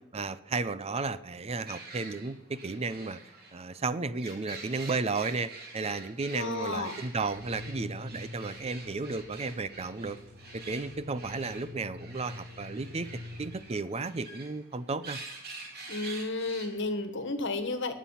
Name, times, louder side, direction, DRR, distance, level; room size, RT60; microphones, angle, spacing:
voice 1, 0.1-3.2 3.5-10.2 10.5-13.1 13.4-15.2, right 3 dB, 30° right, 14 dB, 0.6 m, -33 dB
sound 1, 1.7-17.1, right 3 dB, 50° right, 3.3 m, -47 dB
voice 2, 6.3-7.0 15.9-17.9, left 2 dB, 60° left, 9 dB, 1.6 m, -32 dB
sound 2, 7.2-13.5, left 2 dB, 85° right, 3.0 m, -46 dB
20.0 x 7.3 x 5.8 m, 0.94 s
head